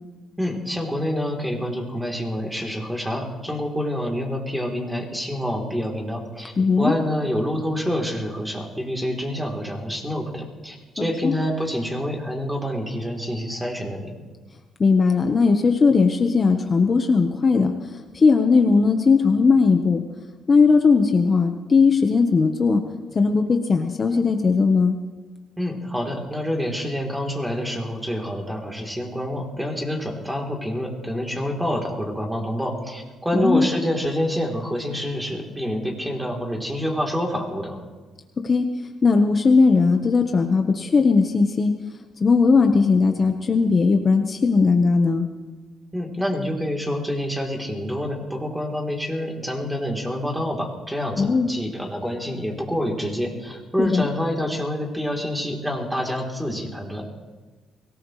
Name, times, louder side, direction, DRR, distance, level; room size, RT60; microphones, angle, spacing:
voice 1, 0.4-14.1 25.6-37.8 45.9-57.1, equal, 5° right, 1 dB, 3.6 m, -27 dB
voice 2, 6.6-6.9 11.0-11.3 14.8-17.7 18.1-20.0 20.5-22.8 23.1-24.9 33.3-33.7 38.4-38.7 39.0-41.8 42.2-45.3 51.2-51.5 53.8-54.1, left 4 dB, 40° left, 5 dB, 1.2 m, -18 dB
23.5 x 18.5 x 3.3 m, 1.3 s
cardioid pair, 90°, 0 cm